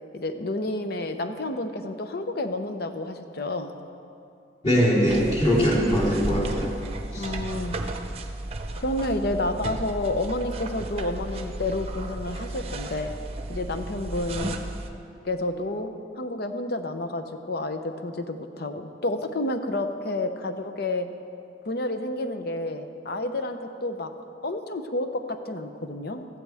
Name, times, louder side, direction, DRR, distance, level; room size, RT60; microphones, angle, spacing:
voice 1, 0.1-3.8 7.2-7.8 8.7-13.1 13.5-14.6 15.2-21.1 21.6-24.1 24.4-26.3, left 2 dB, 60° left, 8 dB, 0.8 m, -30 dB
voice 2, 4.6-6.7 7.1-7.3, equal, 35° left, -8 dB, 3.8 m, -22 dB
sound 1, 5.1-14.9, right 2 dB, 35° right, 0.7 m, -34 dB
14.5 x 14.5 x 3.5 m, 2.6 s
head